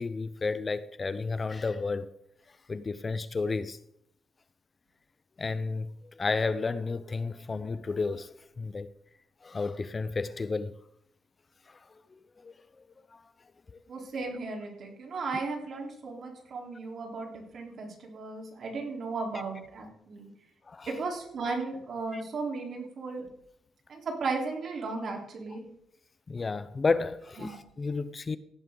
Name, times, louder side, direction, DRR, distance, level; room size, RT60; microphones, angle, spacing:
voice 1, 0.0-2.1 2.7-3.8 5.4-8.9 9.4-10.7 11.7-11.8 12.4-12.5 13.1-13.2 20.7-20.9 22.1-22.2 26.3-28.4, left 4 dB, 25° left, 0.5 m, -32 dB
voice 2, 13.9-20.3 20.9-23.2 23.9-25.7 27.4-27.6, right 3 dB, 50° right, 3.8 m, -35 dB
17.0 x 11.0 x 3.9 m
cardioid pair, 135°, 0 cm